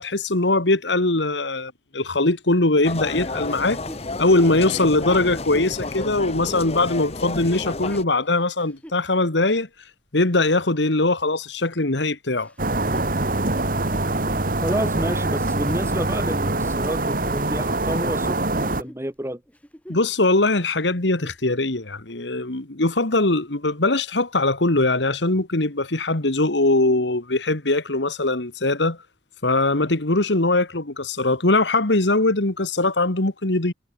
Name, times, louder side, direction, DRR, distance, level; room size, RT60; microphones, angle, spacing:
voice 1, 0.0-3.8 4.2-9.7 10.1-12.5 19.9-29.0 29.4-33.7, left 2 dB, 80° left, 2.1 m, -21 dB
sound 1, 2.8-8.0, left 2 dB, 35° left, 1.4 m, -31 dB
Chuckle chortle, 3.4-9.0 9.6-9.7 12.4-16.3 17.0-18.4 18.7-19.0 19.5-20.2 20.5-20.6 21.0-21.5 22.1-22.2, equal, 10° left, 5.5 m, -45 dB
sound 2, 12.6-18.8, right 2 dB, 50° right, 2.6 m, -24 dB
voice 2, 14.6-19.4, right 1 dB, 15° right, 3.1 m, -29 dB
head